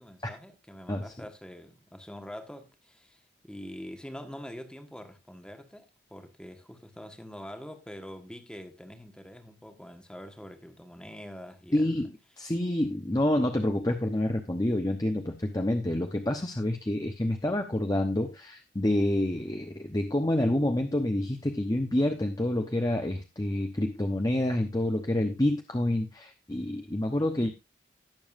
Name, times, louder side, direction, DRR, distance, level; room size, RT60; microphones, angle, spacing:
voice 1, 0.0-12.1 27.2-27.5, equal, 5° left, 1.3 m, -45 dB
voice 2, 11.7-12.1 12.4-27.5, left 1 dB, 20° left, 0.9 m, -28 dB
18.0 x 7.1 x 2.6 m
head